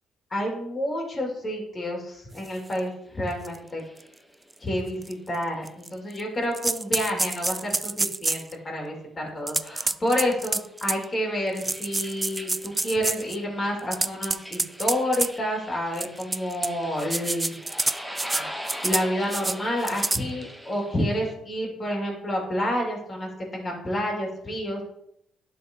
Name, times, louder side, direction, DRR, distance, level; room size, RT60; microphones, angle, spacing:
voice 1, 0.3-3.8 4.6-17.5 18.1-18.4 18.8-24.8, equal, 30° left, -1 dB, 2.4 m, -29 dB
sound 1, 2.5-5.2 5.6-5.7 6.7-7.0 7.2-7.4 9.8-21.3, equal, 5° left, 1.0 m, -42 dB
sound 2, 2.7-2.8 3.4-3.6 4.0-4.1 5.0-5.1 5.7-6.2 6.5-8.5 9.5-11.0 11.6-13.4 13.8-15.3 16.0-16.7 17.0-18.4 18.7-19.0 19.3-19.6 19.9-20.2, right 2 dB, 20° right, 0.3 m, -27 dB
11.5 x 4.2 x 3.0 m, 0.74 s
cardioid pair, 90°, 0 cm